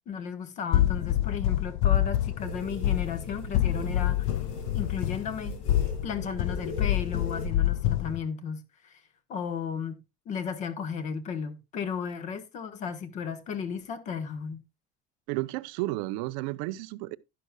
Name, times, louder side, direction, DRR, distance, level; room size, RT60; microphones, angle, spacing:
voice 1, 0.1-4.4 4.7-5.5 6.0-9.0 9.3-10.0 10.2-14.6, left 6 dB, 35° left, 1.4 m, -34 dB
sound 1, 0.7-8.2, left 13 dB, 60° left, 0.4 m, -27 dB
sound 2, 2.4-7.5, left 2 dB, 85° left, 4.9 m, -39 dB
voice 2, 15.3-17.2, right 19 dB, 65° right, 0.6 m, -32 dB
11.5 x 11.0 x 2.3 m
cardioid pair, 165°, 21 cm